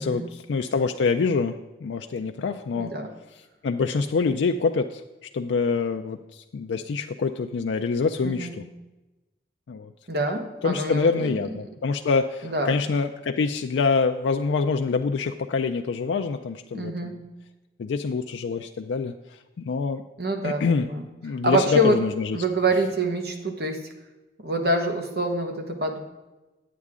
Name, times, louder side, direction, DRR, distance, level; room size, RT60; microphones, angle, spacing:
voice 1, 0.0-3.0 3.6-5.0 5.3-8.6 9.7-9.9 10.6-17.2 17.8-20.0 20.4-20.9 21.2-22.4, left 4 dB, 85° left, 6 dB, 0.4 m, -26 dB
voice 2, 2.8-3.1 8.2-8.5 10.1-11.4 12.4-12.8 16.7-17.1 20.2-21.1 21.4-22.0 22.3-23.8 24.4-26.0, right 1 dB, 60° right, 3 dB, 1.3 m, -25 dB
9.5 x 8.2 x 3.6 m, 1.1 s
head